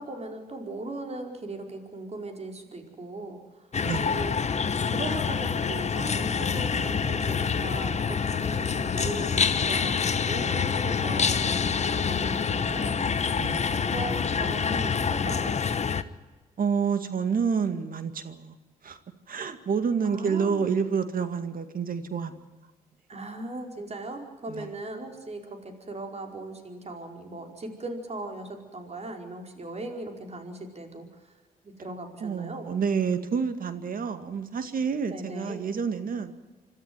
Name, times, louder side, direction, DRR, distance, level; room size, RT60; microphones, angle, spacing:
voice 1, 0.0-3.7 4.0-4.4 4.6-13.3 13.6-15.6 20.0-20.7 23.1-31.2 31.6-32.7 35.1-35.7, right 2 dB, 40° right, 4 dB, 4.8 m, -38 dB
sound 1, 3.7-16.0, left 6 dB, 45° left, 1.2 m, -26 dB
voice 2, 16.6-18.6 18.8-19.0 19.3-22.4 24.5-24.7 32.2-36.3, right 6 dB, 60° right, 10 dB, 2.1 m, -28 dB
26.0 x 13.5 x 9.4 m, 1.2 s
supercardioid pair, 60°, 17 cm